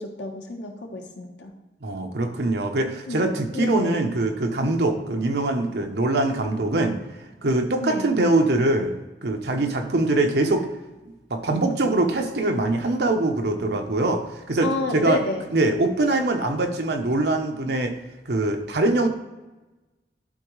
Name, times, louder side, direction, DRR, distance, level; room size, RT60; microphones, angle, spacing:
voice 1, 0.0-1.5 3.1-4.0 7.8-8.0 14.6-15.4, left 3 dB, 90° left, 3 dB, 1.1 m, -30 dB
voice 2, 1.8-7.0 7.4-9.0 9.2-10.7 11.3-15.2 15.5-17.9 18.3-19.1, right 2 dB, 75° right, 4 dB, 0.8 m, -23 dB
11.5 x 3.9 x 3.2 m, 1.1 s
head